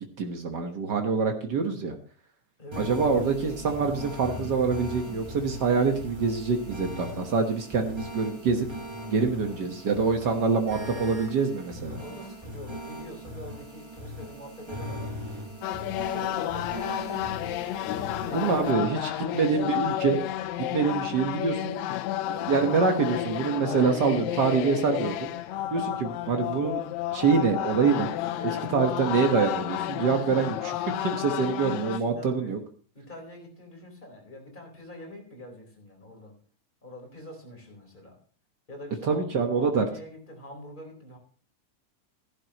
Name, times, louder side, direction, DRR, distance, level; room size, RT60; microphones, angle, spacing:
voice 1, 0.2-1.9 2.8-8.7 9.1-12.0 18.3-20.2 20.6-21.8 22.3-25.3 25.7-26.8 27.1-28.1 28.7-32.6 39.1-39.8, right 5 dB, 70° right, 4 dB, 1.0 m, -25 dB
voice 2, 2.6-2.9 9.3-9.6 11.9-15.2 16.1-19.4 21.7-22.0 25.5-25.8 28.4-28.7 30.1-30.3 31.8-32.6 32.9-36.4 36.8-38.2 38.7-39.2 39.5-41.2, left 1 dB, 15° left, 1 dB, 4.2 m, -45 dB
sound 1, 2.7-18.7, equal, 20° right, 0.7 m, -39 dB
sound 2, 15.6-32.0, left 13 dB, 80° left, 1.7 m, -31 dB
15.0 x 11.5 x 3.0 m, 0.43 s
omnidirectional pair, 3.8 m